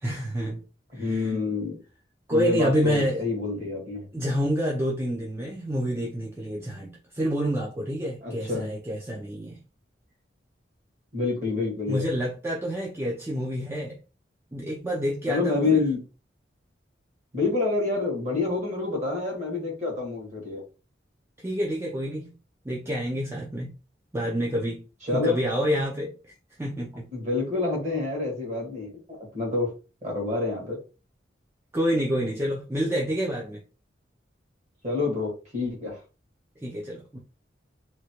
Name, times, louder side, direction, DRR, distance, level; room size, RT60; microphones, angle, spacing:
voice 1, 0.0-0.6 0.9-1.3 2.3-3.3 4.1-9.6 11.9-14.0 14.5-15.9 21.4-22.3 22.6-23.7 24.1-24.8 25.1-26.1 26.6-27.1 31.7-33.6 36.6-37.2, equal, 15° right, 0.5 m, -28 dB
voice 2, 0.9-1.8 2.3-4.1 8.2-8.7 11.1-12.1 15.3-16.0 17.3-20.6 25.1-25.4 27.1-29.7 30.0-30.8 34.8-36.0, left 3 dB, 40° right, 1.5 m, -27 dB
3.0 x 2.3 x 2.8 m
head